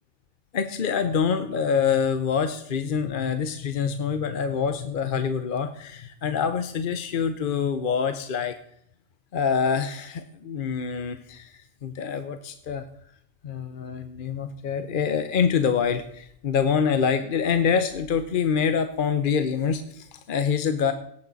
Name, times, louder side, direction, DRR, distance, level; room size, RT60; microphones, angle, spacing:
voice 1, 0.5-8.6 9.3-12.8 13.4-20.9, left 6 dB, 50° left, 10 dB, 0.7 m, -25 dB
17.5 x 8.6 x 4.0 m, 0.70 s
omnidirectional pair, 1.3 m